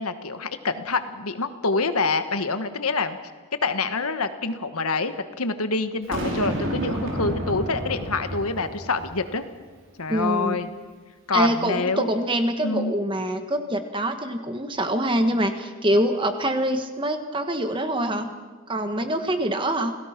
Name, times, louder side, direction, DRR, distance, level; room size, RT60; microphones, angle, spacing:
voice 1, 0.0-3.2 3.6-9.4 10.0-10.7 11.3-12.1 12.6-12.9, left 3 dB, 80° left, 9 dB, 1.4 m, -26 dB
Boom, 6.1-9.4, right 1 dB, 60° right, 4.8 m, -30 dB
voice 2, 10.1-10.6 11.3-18.3 18.7-20.0, right 1 dB, 20° right, 7 dB, 1.5 m, -25 dB
28.0 x 17.5 x 6.0 m, 1.4 s
head